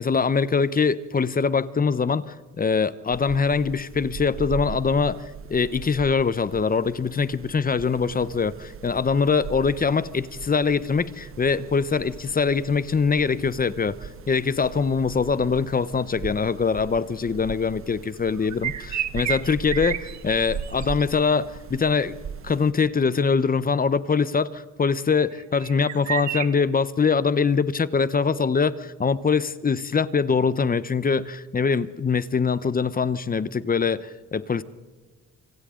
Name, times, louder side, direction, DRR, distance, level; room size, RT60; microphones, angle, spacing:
voice 1, 0.0-22.2 22.4-34.6, left 5 dB, 30° left, 16 dB, 0.9 m, -23 dB
sound 1, 3.1-22.7, right 7 dB, 45° right, 1.1 m, -40 dB
sound 2, 18.4-21.1 25.3-26.5, right 11 dB, 70° right, 1.3 m, -30 dB
26.5 x 25.5 x 3.9 m, 1.3 s
cardioid pair, 90°, 30 cm